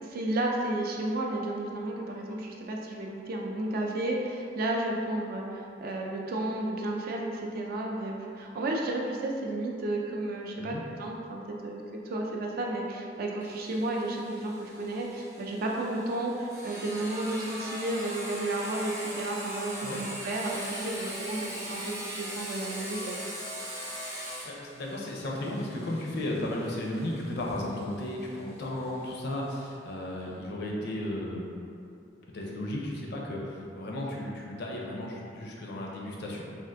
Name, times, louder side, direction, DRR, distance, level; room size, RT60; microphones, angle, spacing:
voice 1, 0.0-23.2, right 1 dB, 50° right, -1 dB, 0.3 m, -32 dB
Sawing, 13.4-28.8, equal, 15° right, 0.6 m, -40 dB
voice 2, 24.4-31.4 32.3-36.4, left 1 dB, 60° left, -2 dB, 0.5 m, -34 dB
3.4 x 2.4 x 2.5 m, 2.5 s
head